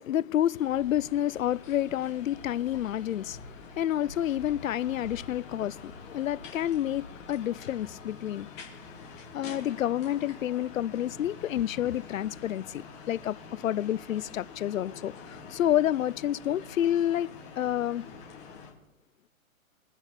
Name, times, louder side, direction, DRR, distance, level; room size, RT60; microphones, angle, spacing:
voice 1, 0.0-8.5 9.3-18.0, left 12 dB, 70° left, 0.5 m, -29 dB
sound 1, 0.5-18.7, left 4 dB, 15° left, 1.9 m, -46 dB
23.5 x 9.7 x 3.3 m
hypercardioid pair, 165°, 42 cm